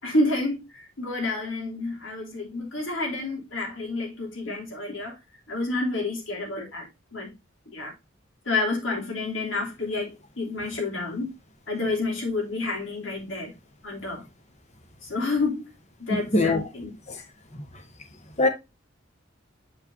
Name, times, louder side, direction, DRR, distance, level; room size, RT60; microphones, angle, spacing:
voice 1, 0.0-5.2 5.5-7.3 7.7-7.9 8.4-11.3 11.7-13.5 13.8-14.2 15.0-15.7 16.0-17.0, left 2 dB, 85° left, 3.2 m, -29 dB
voice 2, 16.1-16.6 18.4-18.5, left 2 dB, 35° left, 1.3 m, -21 dB
8.2 x 5.2 x 2.7 m
head